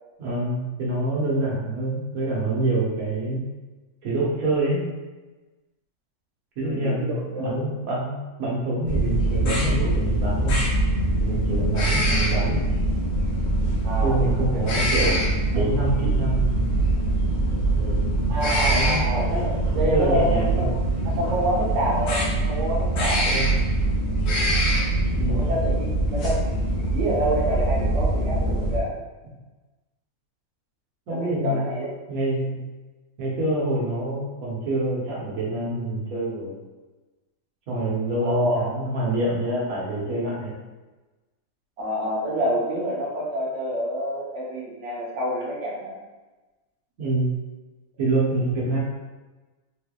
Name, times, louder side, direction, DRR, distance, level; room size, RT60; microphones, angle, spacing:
voice 1, 0.2-3.4 4.0-4.8 6.6-10.7 11.2-12.6 14.0-16.6 17.7-18.4 18.7-19.0 19.7-21.0 23.2-23.6 25.2-25.5 31.1-31.7 32.1-32.6 33.2-36.5 37.7-40.6 47.0-47.3 48.0-48.8, right 2 dB, 75° right, -5 dB, 1.4 m, -26 dB
voice 2, 6.7-7.6 13.8-14.3 14.5-14.8 18.3-20.8 21.0-23.3 25.3-26.4 26.9-28.9 31.1-31.9 38.2-38.7 41.8-46.0, right 1 dB, 60° right, -4 dB, 1.0 m, -27 dB
sound 1, 8.9-28.8, right 1 dB, 70° left, 1.1 m, -23 dB
3.7 x 3.2 x 2.3 m, 1.2 s
omnidirectional pair, 1.5 m